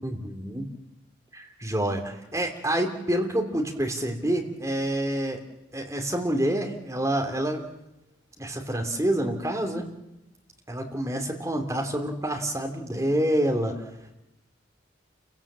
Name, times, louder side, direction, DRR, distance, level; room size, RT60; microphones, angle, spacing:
voice 1, 0.0-0.7 1.3-5.4 5.7-7.6 8.4-9.9 10.7-13.8, right 1 dB, 15° right, 2 dB, 2.8 m, -27 dB
29.0 x 17.0 x 7.5 m, 0.93 s
head